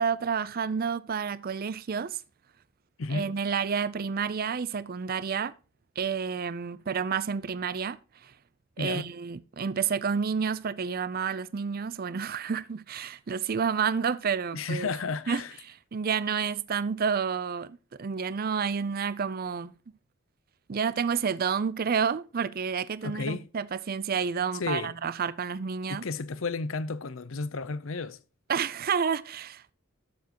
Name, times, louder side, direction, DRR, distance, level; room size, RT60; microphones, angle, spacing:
voice 1, 0.0-2.2 3.1-5.6 6.0-8.3 8.8-14.9 15.3-19.8 20.7-26.0 28.5-29.7, right 6 dB, 45° right, 0.5 m, -30 dB
voice 2, 14.5-15.5 23.0-23.5 24.5-24.9 25.9-28.2, left 4 dB, 70° left, 0.7 m, -32 dB
12.5 x 7.2 x 3.0 m
head